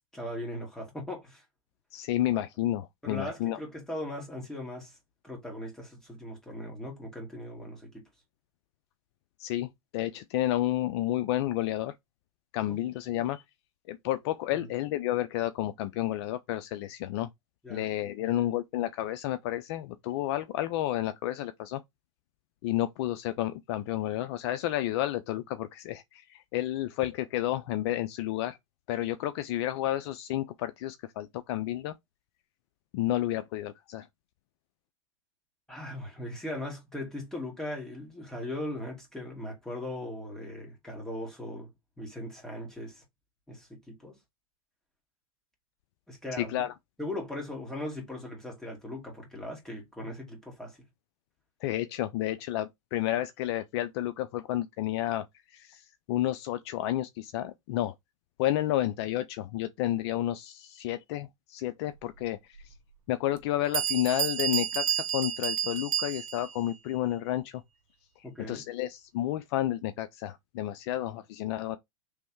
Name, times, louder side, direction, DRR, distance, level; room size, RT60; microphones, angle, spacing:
voice 1, 0.1-1.4 3.0-5.0 5.2-8.1 12.7-12.8 14.5-14.6 17.6-17.8 18.3-18.5 35.7-41.7 42.0-43.0 43.5-44.2 46.1-46.6 47.0-50.8 68.2-68.6, left 1 dB, 5° left, 2.0 m, -39 dB
voice 2, 1.9-3.6 9.4-11.9 12.5-13.4 13.9-17.3 17.7-21.8 22.6-28.6 28.9-31.9 32.9-34.1 46.4-46.7 51.6-55.3 55.5-57.9 58.4-62.7 63.1-67.6 68.2-71.8, left 14 dB, 50° left, 0.4 m, -31 dB
Bell, 62.6-62.7 63.4-63.5 63.7-66.6, right 10 dB, 70° right, 0.9 m, -30 dB
3.4 x 3.1 x 4.5 m
hypercardioid pair, 125°, 17 cm